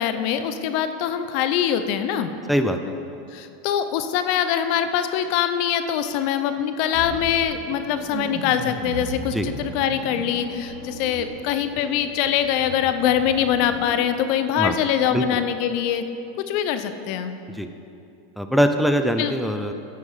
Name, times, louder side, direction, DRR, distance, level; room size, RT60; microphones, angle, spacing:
voice 1, 0.0-2.3 3.3-16.0 16.5-17.3 19.2-19.3, left 9 dB, 55° left, 10 dB, 0.6 m, -23 dB
voice 2, 2.5-2.9 9.3-9.5 14.6-14.7 15.1-15.4 17.5-17.7 18.4-19.7, equal, ahead, 7 dB, 0.5 m, -22 dB
sound 1, 6.9-14.1, right 2 dB, 50° right, 1.6 m, -36 dB
10.5 x 6.4 x 5.6 m, 2.7 s
supercardioid pair, 130°, 0 cm